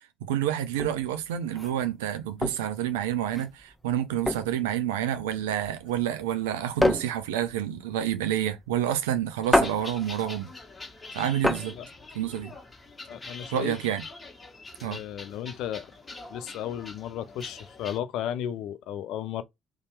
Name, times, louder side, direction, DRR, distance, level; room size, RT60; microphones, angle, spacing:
voice 1, 0.2-10.5 11.1-11.8 12.1-12.5 13.5-14.0 14.8-15.0, right 11 dB, 85° right, 0.4 m, -29 dB
sound 1, 0.7-12.9, left 1 dB, 5° left, 0.7 m, -30 dB
sound 2, 9.4-18.0, left 3 dB, 25° left, 1.2 m, -44 dB
voice 2, 13.1-13.8 14.8-15.9 16.3-19.4, left 10 dB, 70° left, 0.4 m, -34 dB
2.8 x 2.2 x 3.0 m
hypercardioid pair, 60°, 0 cm